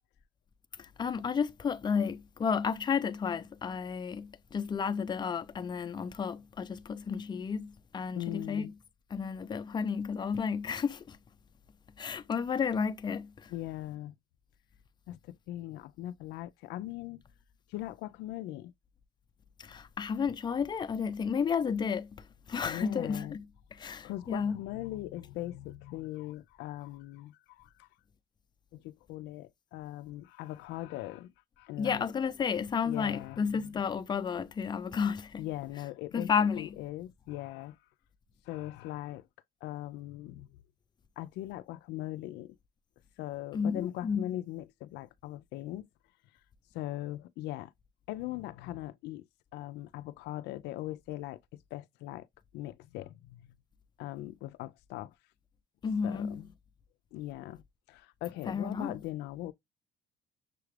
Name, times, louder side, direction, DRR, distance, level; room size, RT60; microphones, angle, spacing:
voice 1, 0.8-8.7 9.1-11.2 12.0-13.5 19.6-22.1 22.5-23.4 23.7-24.5 31.8-35.5 36.1-36.8 43.5-44.3 55.8-56.4 58.5-59.0, left 6 dB, 25° left, 0.5 m, -32 dB
voice 2, 8.2-8.7 13.5-14.2 15.1-17.2 17.7-18.7 22.6-23.4 23.8-27.9 28.7-32.0 32.8-33.8 35.4-36.3 36.6-37.8 38.5-39.3 39.6-40.5 41.2-42.6 43.2-45.9 46.7-47.7 48.1-49.2 49.5-52.3 52.5-53.5 54.0-55.1 56.0-56.5 57.1-57.6 57.9-59.5, left 15 dB, 85° left, 0.4 m, -40 dB
6.6 x 2.3 x 3.2 m
cardioid pair, 110°, 17 cm